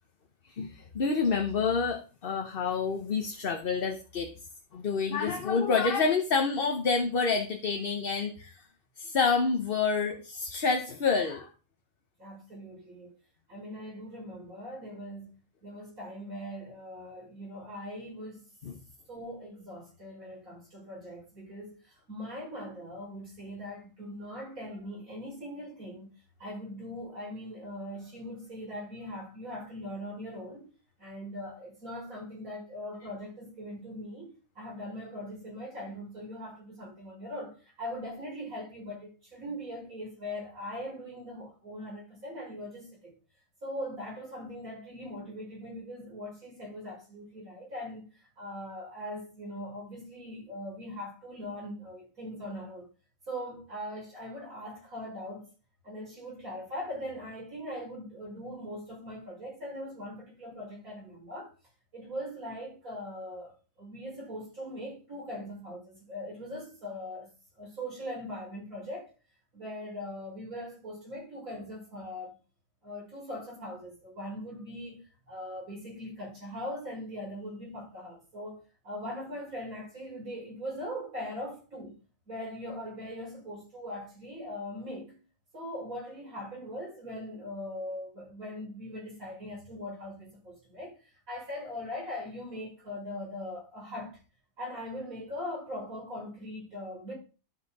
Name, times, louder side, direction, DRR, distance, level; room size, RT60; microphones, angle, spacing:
voice 1, 0.5-4.3 4.7-8.6 9.0-11.5 18.6-18.8, left 5 dB, 45° left, 1.0 m, -28 dB
voice 2, 12.2-13.1 13.5-15.3 15.6-18.4 19.1-26.1 26.4-30.7 31.0-43.1 43.6-48.1 48.4-52.9 53.3-55.5 55.8-61.5 61.9-67.3 67.6-69.1 69.5-72.4 72.8-82.0 82.3-85.2 85.5-90.9 91.3-94.2 94.6-97.1, left 1 dB, 85° right, 6.2 m, -41 dB
12.0 x 5.8 x 4.1 m
omnidirectional pair, 1.4 m